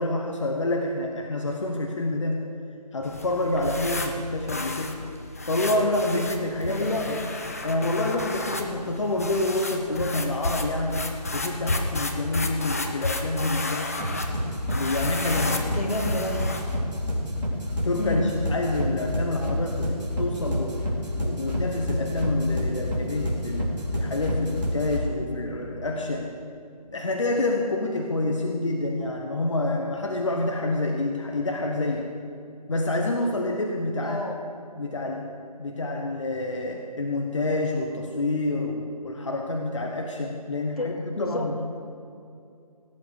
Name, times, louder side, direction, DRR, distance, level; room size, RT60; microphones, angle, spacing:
voice 1, 0.0-2.4 2.9-5.0 5.4-7.3 7.6-13.9 14.7-15.7 17.8-20.8 21.2-26.3 26.9-32.1 32.7-34.2 34.8-35.2 35.6-41.6, left 2 dB, 45° left, 1 dB, 1.2 m, -27 dB
sound 1, 3.0-16.8, left 2 dB, 20° left, 0.6 m, -32 dB
voice 2, 6.7-7.2 15.7-16.3 18.0-18.3 34.0-34.4 40.8-41.5, left 2 dB, 65° left, 2 dB, 2.3 m, -29 dB
sound 2, 14.0-25.0, left 1 dB, 75° right, 4.1 m, -29 dB
17.5 x 7.7 x 6.6 m, 2.4 s
figure-of-eight pair, 165°, 21 cm